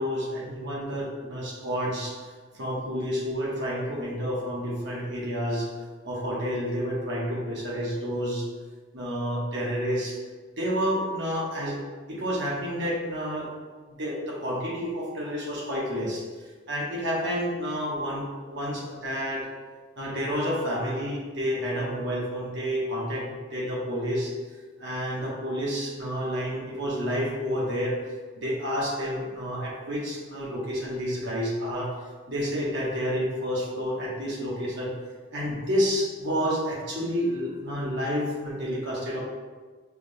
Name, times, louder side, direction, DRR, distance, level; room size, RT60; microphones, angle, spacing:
voice 1, 0.0-2.2 2.5-5.7 6.0-8.5 8.9-10.2 10.6-11.8 12.1-13.5 14.0-16.2 16.7-19.5 20.0-24.3 24.8-28.0 28.4-31.9 32.3-34.9 35.3-39.2, equal, 65° right, -4 dB, 1.2 m, -29 dB
5.8 x 3.6 x 2.3 m, 1.4 s
head